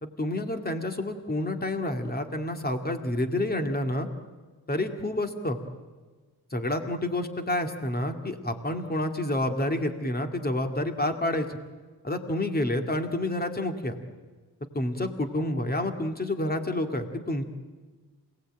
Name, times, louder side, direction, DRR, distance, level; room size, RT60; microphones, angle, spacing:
voice 1, 0.0-4.1 4.7-5.6 6.5-11.6 12.0-14.0 14.7-17.4, left 1 dB, 25° left, 5 dB, 2.4 m, -29 dB
27.5 x 19.0 x 9.1 m, 1.4 s
wide cardioid pair, 135°, 39 cm